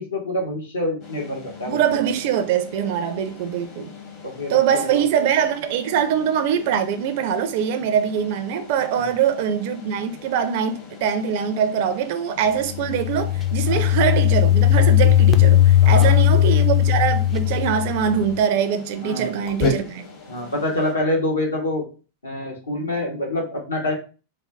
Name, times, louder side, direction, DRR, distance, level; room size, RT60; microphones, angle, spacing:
voice 1, 0.0-1.8 4.2-4.6 4.9-5.0 8.9-9.1 13.7-13.9 15.8-16.4 19.0-19.3 20.3-21.8 22.2-24.0, left 1 dB, 75° left, 1.0 m, -26 dB
sound 1, 1.0-20.9, left 2 dB, 45° left, 1.0 m, -37 dB
voice 2, 1.6-3.9 4.5-20.0, right 8 dB, 50° right, 0.4 m, -23 dB
sound 2, 12.7-18.3, left 12 dB, 20° left, 0.4 m, -17 dB
3.1 x 2.2 x 2.6 m
figure-of-eight pair, 90°, 0 cm